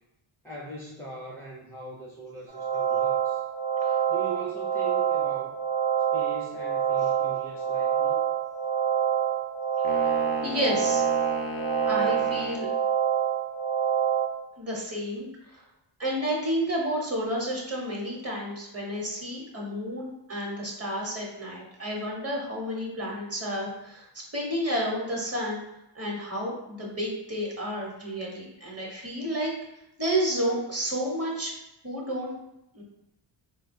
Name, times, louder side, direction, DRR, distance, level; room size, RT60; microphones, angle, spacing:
voice 1, 0.4-3.4 4.1-5.6 6.1-8.2, right 3 dB, 5° left, -6 dB, 0.4 m, -40 dB
sound 1, 2.5-14.3, right 9 dB, 55° right, 0.7 m, -26 dB
sound 2, 9.8-12.7, left 3 dB, 85° left, 0.5 m, -34 dB
voice 2, 10.4-11.0 11.8-12.7 14.6-15.6 16.0-24.0 24.3-25.6 25.9-29.5 30.0-31.5 31.8-32.3 32.7-32.8, equal, 30° right, -3 dB, 0.9 m, -31 dB
4.1 x 2.2 x 2.6 m, 0.87 s
wide cardioid pair, 125°, 49 cm